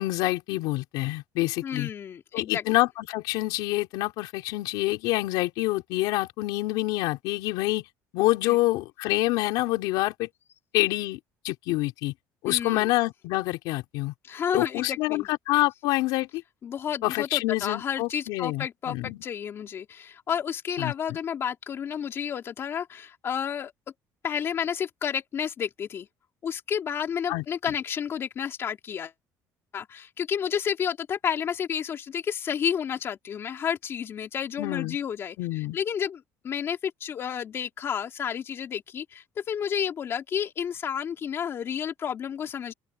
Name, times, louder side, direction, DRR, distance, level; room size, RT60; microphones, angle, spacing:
voice 1, 0.0-1.9 2.3-7.8 8.1-10.3 10.7-11.2 11.4-12.1 12.4-14.1 14.5-16.3 17.0-19.2 20.8-20.9 27.3-27.4 34.6-35.0 35.4-35.8, left 19 dB, 85° left, 3.9 m, -26 dB
voice 2, 1.6-2.6 8.4-8.6 12.4-12.9 14.2-15.3 16.6-23.7 24.2-26.1 26.4-29.1 29.7-42.7, left 8 dB, 35° left, 3.1 m, -31 dB
open air
cardioid pair, 155°, 7 cm